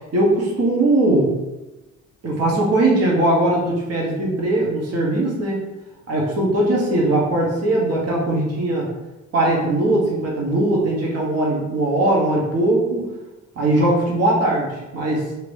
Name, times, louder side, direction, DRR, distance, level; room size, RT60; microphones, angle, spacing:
voice 1, 0.1-1.4 2.2-5.6 6.1-8.9 9.3-13.1 13.6-15.2, right 1 dB, 55° right, -3 dB, 1.1 m, -20 dB
3.0 x 2.6 x 3.3 m, 1.0 s
cardioid pair, 90°, 30 cm